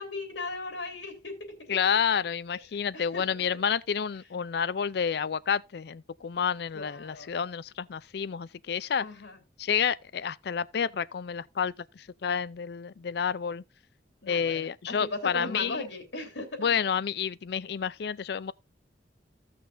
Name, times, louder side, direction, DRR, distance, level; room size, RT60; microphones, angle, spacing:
voice 1, 0.0-1.8 2.5-2.6 2.9-3.3 6.7-7.3 9.0-9.4 14.2-16.7, left 2 dB, 90° left, 3.0 m, -37 dB
voice 2, 1.7-9.1 9.6-13.6 14.3-15.8 16.6-18.5, left 7 dB, 60° left, 0.4 m, -29 dB
15.5 x 6.1 x 2.6 m
head